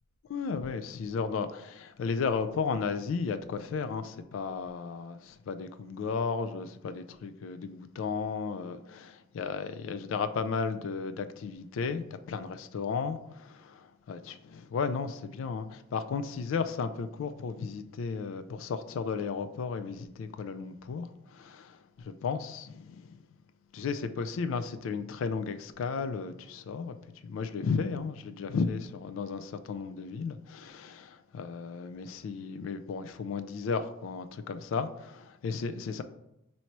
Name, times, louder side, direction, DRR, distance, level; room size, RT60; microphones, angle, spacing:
voice 1, 0.3-23.2 23.7-27.0 27.2-36.0, left 5 dB, 90° left, 0.3 m, -34 dB
3.0 x 2.7 x 4.4 m
head